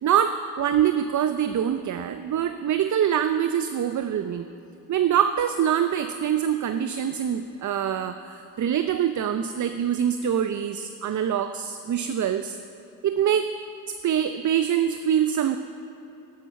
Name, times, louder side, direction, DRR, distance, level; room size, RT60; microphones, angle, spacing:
voice 1, 0.0-4.5 4.9-12.6 13.0-13.5 14.0-15.6, right 9 dB, 45° right, 9 dB, 0.6 m, -24 dB
11.0 x 8.4 x 5.8 m, 2.9 s
supercardioid pair, 55°, 41 cm